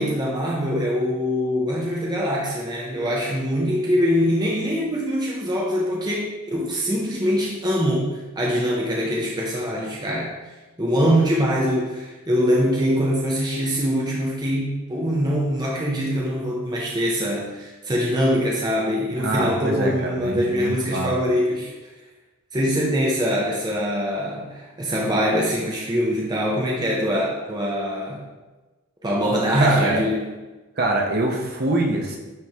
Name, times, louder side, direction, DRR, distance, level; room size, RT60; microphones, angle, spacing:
voice 1, 0.0-10.3 10.8-21.7 22.5-28.2 29.0-30.3, equal, 20° right, -3 dB, 0.6 m, -23 dB
voice 2, 19.2-21.1 29.6-30.0 30.8-32.2, right 2 dB, 50° right, 1 dB, 0.9 m, -24 dB
9.3 x 3.2 x 3.5 m, 1.2 s
head